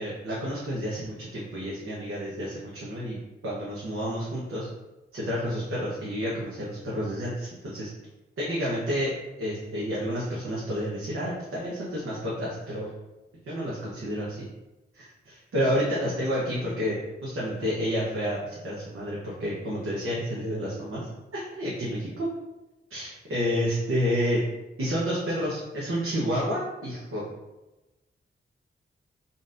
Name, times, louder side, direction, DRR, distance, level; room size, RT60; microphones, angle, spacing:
voice 1, 0.0-3.2 3.4-4.7 5.1-7.9 8.4-9.1 9.4-12.9 13.5-14.4 14.9-21.0 21.3-22.3 22.9-24.4 24.8-27.2, equal, 90° right, -7 dB, 1.0 m, -30 dB
3.9 x 3.9 x 2.5 m, 1.0 s
wide cardioid pair, 150°, 21 cm